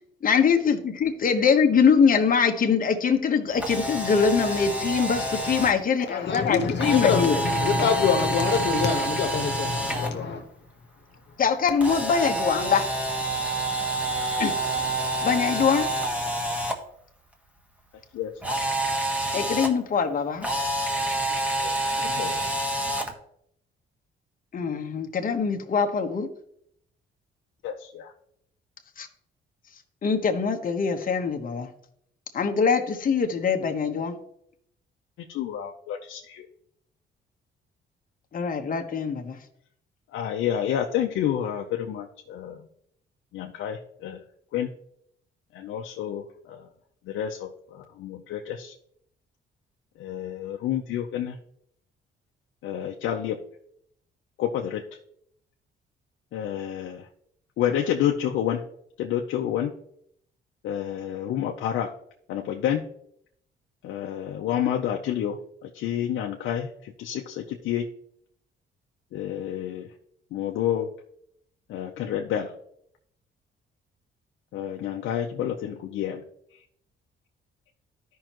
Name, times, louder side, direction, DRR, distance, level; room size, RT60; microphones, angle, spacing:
voice 1, 0.2-7.3 11.4-12.9 14.4-14.6 15.2-15.9 19.3-20.5 24.5-26.3 29.0-29.1 30.0-31.7 32.3-34.1 38.3-39.4, left 6 dB, 45° left, 1.1 m, -23 dB
Camera, 3.5-5.7 6.8-10.1 11.8-16.7 18.4-19.7 20.4-23.1, right 1 dB, 5° right, 1.5 m, -28 dB
voice 2, 6.0-10.5, left 6 dB, 60° left, 1.3 m, -25 dB
voice 3, 21.6-22.5 27.6-28.1 35.3-36.5 40.1-42.6 43.3-44.2 44.5-44.7 45.5-46.6 47.1-48.7 50.0-51.4 52.6-53.4 54.4-54.8 56.3-57.0 57.6-58.6 59.0-59.7 60.6-61.9 62.3-62.8 63.8-67.9 69.1-69.9 70.3-70.9 71.7-72.5 74.5-76.2, left 10 dB, 85° left, 0.8 m, -29 dB
13.0 x 5.6 x 3.0 m
cardioid pair, 90°, 20 cm